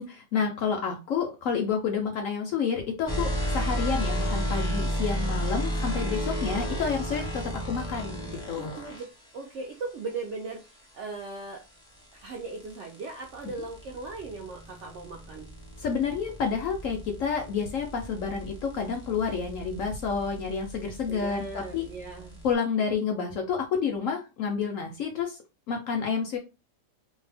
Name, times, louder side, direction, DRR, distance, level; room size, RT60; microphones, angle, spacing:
voice 1, 0.0-8.8 15.8-21.9 22.4-25.4 25.7-26.4, left 6 dB, 70° left, 3 dB, 0.8 m, -29 dB
sound 1, 3.1-9.1 11.5-22.5, equal, 5° left, 0.6 m, -33 dB
voice 2, 8.6-9.0 9.3-11.6 12.1-15.5 21.1-22.4, right 3 dB, 70° right, 0 dB, 0.6 m, -38 dB
2.7 x 2.1 x 3.3 m, 0.28 s
omnidirectional pair, 1.8 m